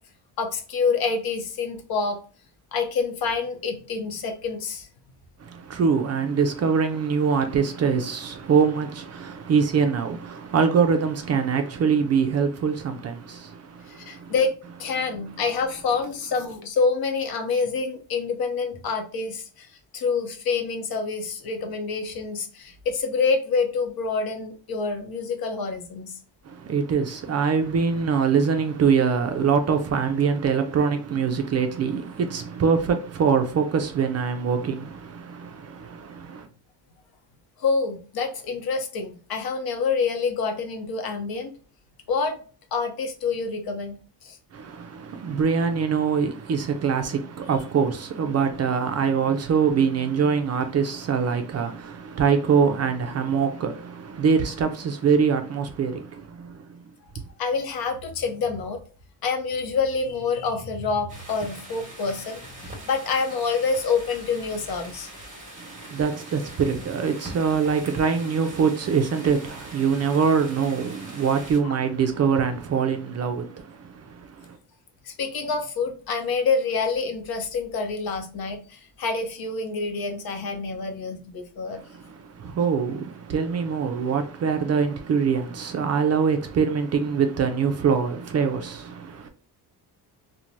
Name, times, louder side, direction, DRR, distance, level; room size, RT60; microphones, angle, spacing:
voice 1, 0.4-2.2 2.7-4.9 13.9-14.5 14.8-19.7 19.9-26.2 37.6-41.5 42.1-42.4 42.7-43.9 44.2-44.4 57.4-58.8 59.2-65.1 71.6-71.7 75.0-81.8, left 4 dB, 60° left, 0.7 m, -27 dB
voice 2, 5.4-14.3 26.5-36.5 44.5-56.8 65.6-74.6 81.7-89.3, right 6 dB, 40° right, 0.4 m, -24 dB
sound 1, 61.1-71.6, right 1 dB, 20° right, 1.1 m, -43 dB
3.0 x 2.2 x 2.5 m
cardioid pair, 110°, 41 cm